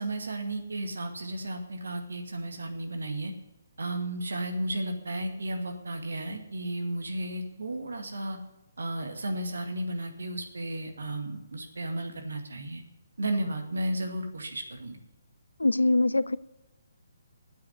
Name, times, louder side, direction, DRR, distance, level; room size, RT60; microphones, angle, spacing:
voice 1, 0.0-3.3 3.8-8.4 8.8-12.8 13.2-15.0, right 1 dB, 65° right, 5 dB, 2.1 m, -33 dB
voice 2, 15.6-16.4, left 2 dB, 75° left, 19 dB, 0.5 m, -23 dB
9.4 x 8.4 x 9.4 m, 0.93 s
figure-of-eight pair, 135°, 0 cm